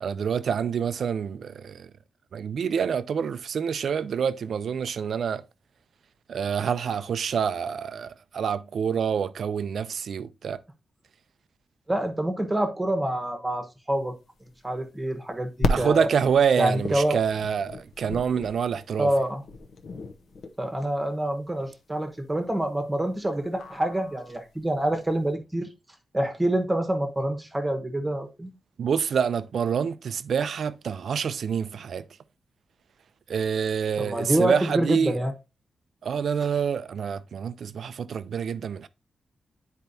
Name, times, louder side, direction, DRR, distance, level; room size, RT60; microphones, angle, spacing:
voice 1, 0.0-1.9 2.3-5.4 6.3-10.6 15.7-19.1 28.8-32.1 33.3-35.2 36.0-38.9, right 7 dB, 60° right, 0.4 m, -27 dB
voice 2, 11.9-14.1 14.6-16.1 16.6-17.2 19.0-19.4 20.6-25.7 26.1-28.5 34.0-35.3, right 1 dB, 15° right, 1.1 m, -26 dB
sound 1, 14.1-25.2, left 2 dB, 60° left, 0.8 m, -35 dB
10.5 x 4.5 x 2.6 m
wide cardioid pair, 165°, 0 cm